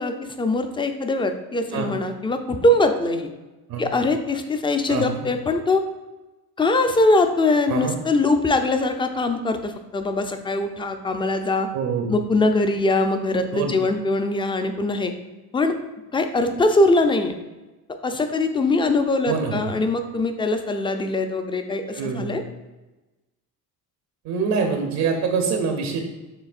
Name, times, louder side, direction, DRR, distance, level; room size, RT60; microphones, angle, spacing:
voice 1, 0.0-3.3 3.8-5.8 6.6-11.7 12.1-15.1 15.5-15.8 16.1-17.3 18.0-22.4, left 2 dB, 15° left, 7 dB, 0.4 m, -22 dB
voice 2, 4.9-5.2 7.7-8.0 11.7-12.1 13.5-13.7 19.3-19.8 21.9-22.4 24.2-26.0, right 5 dB, 75° right, 3 dB, 0.8 m, -25 dB
6.8 x 3.2 x 2.4 m, 1.1 s
cardioid pair, 95°, 36 cm